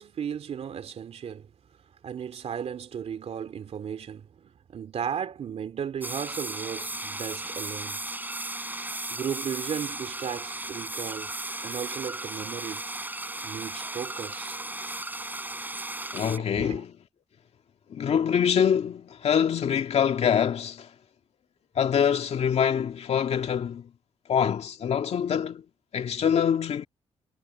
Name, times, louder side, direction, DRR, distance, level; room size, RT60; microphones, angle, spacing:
voice 1, 0.0-1.5 2.0-8.0 9.1-11.3 11.6-12.8 13.4-14.6 16.4-16.8, right 8 dB, 65° right, 2.9 m, -35 dB
sound 1, 6.0-16.4, right 2 dB, 15° right, 5.1 m, -35 dB
voice 2, 16.1-16.9 17.9-20.9 21.8-23.9 24.3-25.6 25.9-26.9, left 8 dB, 65° left, 2.2 m, -25 dB
cardioid pair, 85°, 12 cm